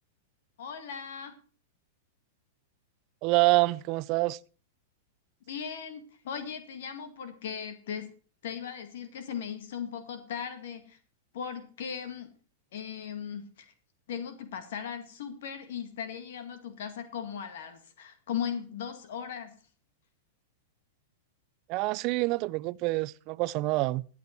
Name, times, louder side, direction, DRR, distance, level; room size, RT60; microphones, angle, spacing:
voice 1, 0.6-1.4 5.5-8.1 8.4-11.0 11.3-12.3 12.7-13.7 14.1-19.5, left 7 dB, 70° left, 1.9 m, -38 dB
voice 2, 3.2-4.4 21.7-24.1, right 21 dB, 45° right, 0.5 m, -26 dB
15.5 x 8.6 x 4.5 m
hypercardioid pair, 135°, 0 cm